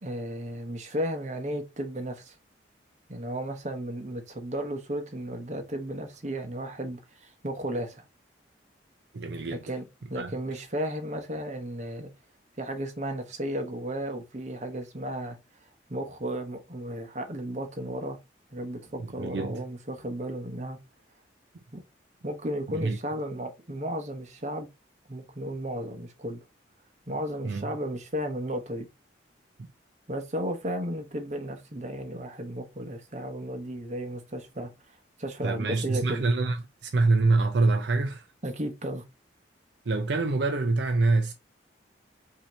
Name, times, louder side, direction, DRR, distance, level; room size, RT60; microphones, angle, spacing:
voice 1, 0.0-2.4 3.1-8.0 9.5-12.1 12.6-15.4 15.9-18.2 18.5-20.8 21.7-21.8 22.2-24.7 25.1-26.4 27.1-28.9 30.1-34.7 35.2-36.2 38.4-39.0, equal, 40° right, 1.0 m, -34 dB
voice 2, 9.1-9.6 10.2-10.3 19.0-19.6 22.7-23.0 27.4-27.7 35.4-36.6 36.8-38.3 39.9-41.3, right 3 dB, 65° right, 0.5 m, -25 dB
5.6 x 2.9 x 3.0 m
head